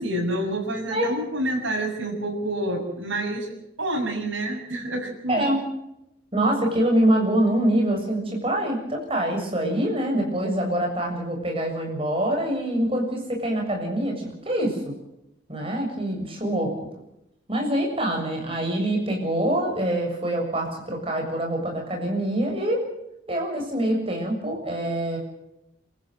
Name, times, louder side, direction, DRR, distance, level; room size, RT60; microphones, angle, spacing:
voice 1, 0.0-3.5 3.8-5.4, right 1 dB, 85° right, 1 dB, 7.2 m, -28 dB
voice 2, 5.3-5.6 6.3-14.8 15.5-16.7 17.5-22.8 23.3-25.2, right 1 dB, 30° right, 1 dB, 7.1 m, -25 dB
27.5 x 15.0 x 7.9 m, 0.84 s
head